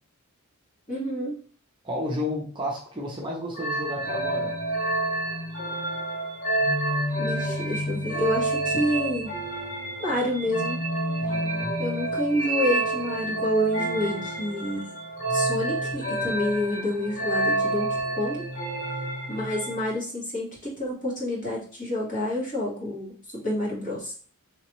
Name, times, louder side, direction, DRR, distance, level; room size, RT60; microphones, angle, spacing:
voice 1, 0.9-1.3 7.2-9.3 10.0-10.8 11.8-14.9 15.3-18.5 19.3-23.2 23.4-24.1, left 1 dB, 40° left, -5 dB, 1.7 m, -28 dB
voice 2, 1.8-4.6 11.2-11.8, left 1 dB, 20° right, -1 dB, 0.7 m, -32 dB
sound 1, 3.5-20.0, right 2 dB, 65° left, 1.9 m, -28 dB
3.4 x 3.1 x 3.0 m, 0.43 s
head